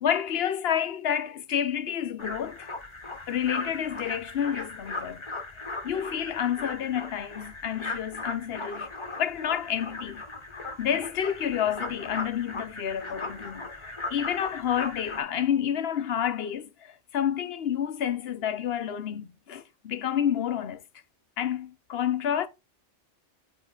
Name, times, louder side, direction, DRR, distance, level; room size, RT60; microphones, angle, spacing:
voice 1, 0.0-2.7 3.3-5.2 5.8-8.9 9.2-10.2 10.8-20.8 21.4-22.5, left 9 dB, 60° left, 0.9 m, -29 dB
sound 1, 2.2-15.2, left 2 dB, 25° left, 1.0 m, -38 dB
8.4 x 3.6 x 3.8 m
omnidirectional pair, 1.2 m